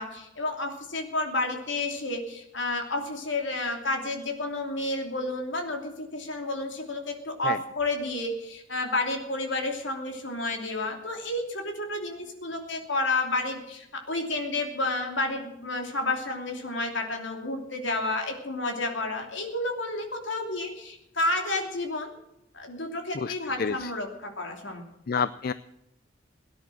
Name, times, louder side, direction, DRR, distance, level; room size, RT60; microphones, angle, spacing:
voice 1, 0.0-22.1 22.5-24.9, left 2 dB, 70° left, 3 dB, 3.0 m, -31 dB
voice 2, 23.1-23.9 25.1-25.5, left 5 dB, 50° left, 15 dB, 0.4 m, -29 dB
18.0 x 10.5 x 6.3 m, 0.88 s
head